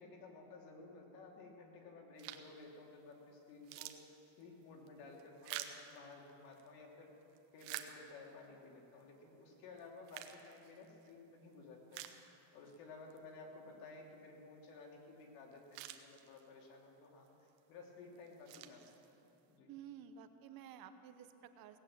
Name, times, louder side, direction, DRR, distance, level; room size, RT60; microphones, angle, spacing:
voice 1, 0.0-7.1 7.5-19.0 19.5-19.7, left 3 dB, 85° left, 0 dB, 2.9 m, -55 dB
sound 1, 2.2-2.6 3.1-3.2 3.5-6.7 7.2-8.5 9.0-9.1 9.8-11.1 11.5-11.6 11.9-12.8 13.1-13.2 15.2-15.3 15.5-16.7 17.3-17.6 18.1-19.4, right 12 dB, 90° right, 1.1 m, -50 dB
voice 2, 19.7-21.8, right 9 dB, 45° right, 9 dB, 0.9 m, -53 dB
18.0 x 8.7 x 7.4 m, 2.9 s
cardioid pair, 140°, 48 cm